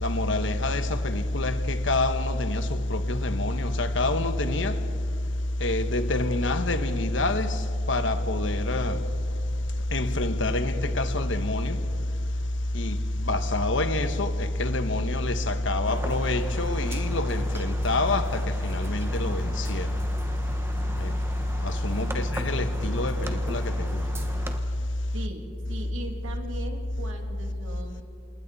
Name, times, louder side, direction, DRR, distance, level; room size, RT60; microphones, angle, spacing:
voice 1, 0.0-4.8 5.6-9.0 9.9-11.8 12.7-19.9 21.0-21.1 21.6-24.0, left 2 dB, 70° left, 1.2 m, -26 dB
sound 1, 15.9-24.6, right 1 dB, 15° right, 1.3 m, -38 dB
voice 2, 21.9-22.3 25.1-28.0, right 1 dB, 90° right, 2.7 m, -40 dB
29.0 x 28.0 x 4.2 m
head